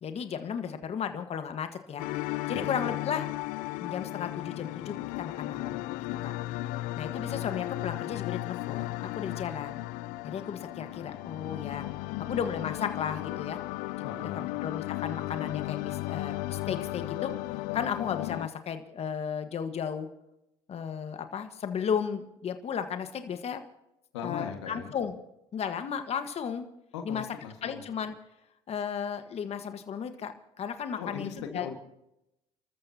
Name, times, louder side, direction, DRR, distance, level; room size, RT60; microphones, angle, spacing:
voice 1, 0.0-2.0 2.5-3.3 3.8-5.8 6.2-6.3 7.0-9.8 10.2-13.6 14.6-17.3 17.7-20.1 20.7-23.6 24.2-25.1 25.5-26.7 27.0-27.2 27.6-28.1 28.7-30.3 30.6-31.7, left 7 dB, 45° left, 8 dB, 1.5 m, -34 dB
sound 1, 2.0-18.5, left 18 dB, 75° left, 0.5 m, -35 dB
voice 2, 2.5-2.9 14.0-14.5 24.1-24.9 26.9-27.8 31.0-31.8, left 7 dB, 90° left, 5 dB, 1.8 m, -38 dB
29.5 x 14.0 x 2.9 m, 0.85 s
hypercardioid pair, 70°, 14 cm